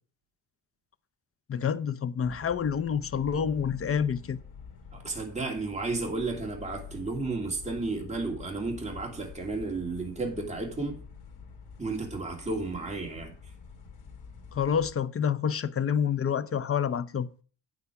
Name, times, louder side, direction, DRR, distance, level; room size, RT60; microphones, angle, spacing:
voice 1, 1.5-4.4 14.5-17.3, left 7 dB, 30° left, 0.6 m, -28 dB
sound 1, 2.2-14.9, left 6 dB, 60° left, 2.7 m, -47 dB
voice 2, 4.9-11.0 11.8-13.3, right 3 dB, 15° right, 2.6 m, -33 dB
9.0 x 8.3 x 4.8 m
cardioid pair, 140°, 46 cm